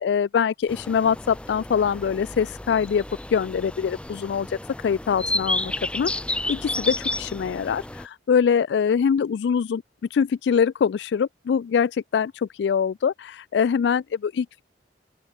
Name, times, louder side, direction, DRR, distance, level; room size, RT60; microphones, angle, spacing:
voice 1, 0.0-3.0 3.3-6.1 6.5-9.8 10.1-14.6, left 7 dB, 70° left, 0.3 m, -23 dB
morning birds ambience, 0.7-8.1, left 2 dB, 5° left, 0.5 m, -31 dB
open air
head